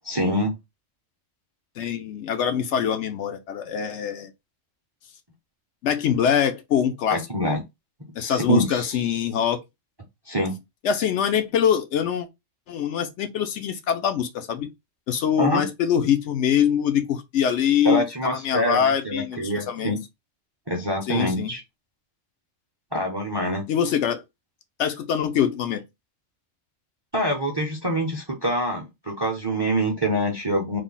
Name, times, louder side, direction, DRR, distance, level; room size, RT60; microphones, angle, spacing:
voice 1, 0.0-0.5 7.1-7.6 8.2-9.0 10.3-10.6 15.4-15.6 17.8-20.0 20.7-21.6 22.9-23.7 27.1-30.8, right 1 dB, 25° right, 0.6 m, -25 dB
voice 2, 1.8-4.3 5.8-7.6 8.2-9.6 10.8-12.3 12.7-14.7 15.1-20.0 21.1-21.5 23.7-24.2 24.8-25.8, left 8 dB, 70° left, 0.8 m, -24 dB
3.3 x 2.1 x 3.8 m
omnidirectional pair, 1.3 m